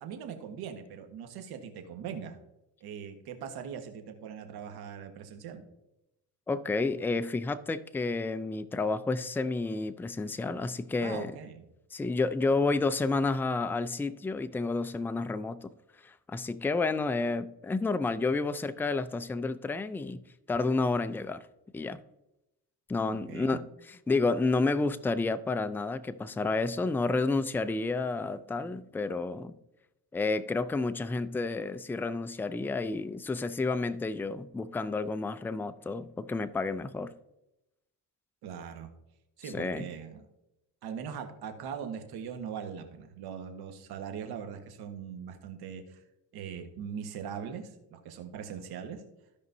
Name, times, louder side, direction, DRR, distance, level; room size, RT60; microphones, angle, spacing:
voice 1, 0.0-2.4 2.8-5.6 11.0-11.6 23.1-23.6 38.4-38.9 39.4-40.2 40.8-46.0 46.3-49.0, right 7 dB, 80° right, 1.5 m, -41 dB
voice 2, 6.5-11.3 11.9-15.7 16.0-21.4 21.7-22.0 22.9-29.5 30.1-37.1 39.5-39.9, left 3 dB, 5° left, 0.3 m, -30 dB
15.5 x 5.2 x 2.7 m
cardioid pair, 110°, 38 cm